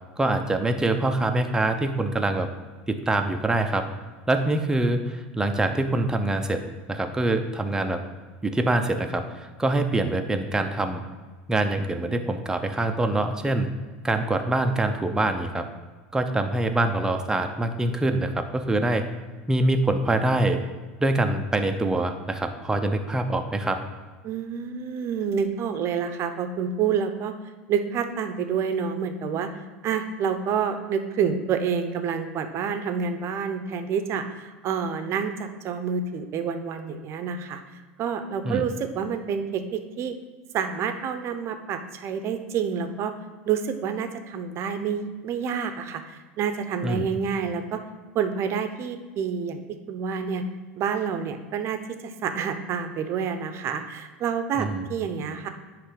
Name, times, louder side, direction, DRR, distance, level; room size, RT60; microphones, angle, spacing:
voice 1, 0.2-2.5 2.9-3.9 4.3-6.6 6.9-8.0 8.4-11.0 11.5-13.7 14.0-15.6 16.1-19.1 19.5-20.6 21.0-23.8 38.4-38.7 46.8-47.1 54.6-54.9, right 2 dB, 10° right, 6 dB, 0.7 m, -24 dB
voice 2, 24.2-27.3 27.7-29.5 29.8-37.6 38.0-40.2 40.5-43.1 43.5-47.8 48.1-49.6 49.9-50.4 50.8-55.5, right 6 dB, 45° right, 8 dB, 0.7 m, -28 dB
9.8 x 3.3 x 5.2 m, 1.4 s
hypercardioid pair, 100°, 6 cm